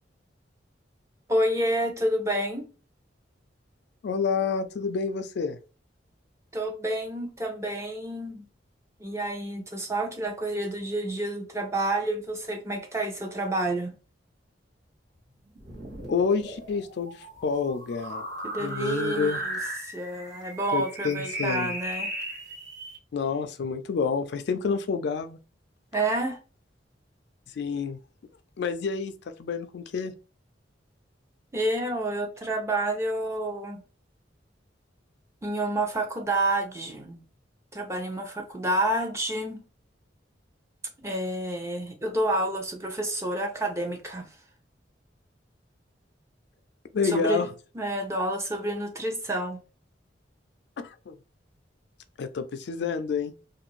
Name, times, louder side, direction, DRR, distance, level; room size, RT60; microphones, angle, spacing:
voice 1, 1.3-2.7 6.5-8.4 9.0-13.9 18.4-22.1 25.9-26.4 31.5-33.8 35.4-37.2 37.7-39.6 41.0-44.3 47.0-47.4 47.7-49.6, right 1 dB, 15° right, 0.6 m, -29 dB
voice 2, 4.0-5.6 16.1-18.2 18.6-19.4 20.7-21.7 23.1-25.4 27.6-28.0 28.6-29.1 29.4-30.1 46.9-47.5 50.8-51.2 52.2-53.3, left 5 dB, 65° left, 0.4 m, -28 dB
sound 1, 15.5-23.0, right 1 dB, 75° right, 1.6 m, -36 dB
2.6 x 2.5 x 3.0 m
head